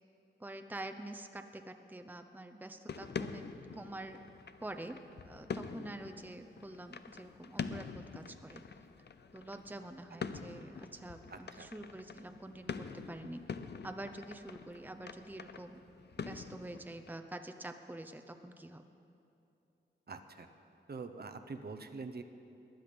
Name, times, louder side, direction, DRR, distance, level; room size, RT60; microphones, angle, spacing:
voice 1, 0.4-3.5 3.7-4.2 4.6-5.0 5.2-8.6 9.3-13.4 13.8-15.8 16.3-18.8, right 1 dB, 10° right, 7 dB, 0.7 m, -46 dB
sound 1, 2.9-17.2, left 5 dB, 60° left, 0.6 m, -45 dB
voice 2, 11.3-11.7 20.1-20.5 20.9-22.2, right 4 dB, 55° right, 7 dB, 0.8 m, -45 dB
15.5 x 10.5 x 5.3 m, 2.7 s
cardioid pair, 60°, 19 cm